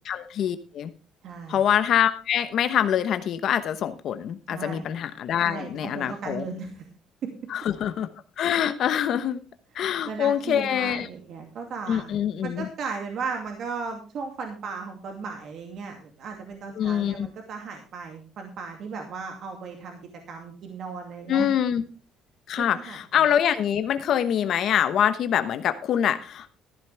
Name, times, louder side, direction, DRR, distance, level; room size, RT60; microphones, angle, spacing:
voice 1, 0.1-0.9 1.5-6.5 7.5-8.1 8.4-9.4 9.7-11.1 11.9-12.7 16.8-17.3 21.3-21.8 22.5-26.6, left 9 dB, 60° left, 11 dB, 1.0 m, -25 dB
voice 2, 1.2-1.6 4.5-4.9 5.4-6.9 7.2-7.3 10.1-12.1 12.4-20.0 20.3-21.5 22.6-23.0, right 5 dB, 60° right, 3 dB, 2.4 m, -36 dB
14.0 x 11.5 x 3.4 m, 0.34 s
cardioid pair, 105°, 0 cm